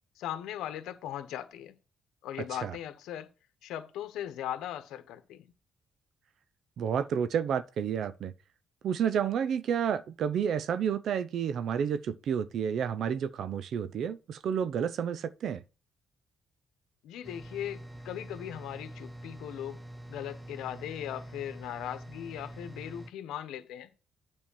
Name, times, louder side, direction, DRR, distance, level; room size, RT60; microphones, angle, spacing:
voice 1, 0.2-1.8 2.2-3.3 3.6-5.5 17.0-19.8 20.1-23.9, left 11 dB, 90° left, 1.0 m, -39 dB
voice 2, 6.8-8.3 8.8-15.6, right 8 dB, 70° right, 0.6 m, -30 dB
sound 1, 17.2-23.1, right 1 dB, 10° right, 0.7 m, -45 dB
8.9 x 4.5 x 7.0 m
cardioid pair, 90°, 0 cm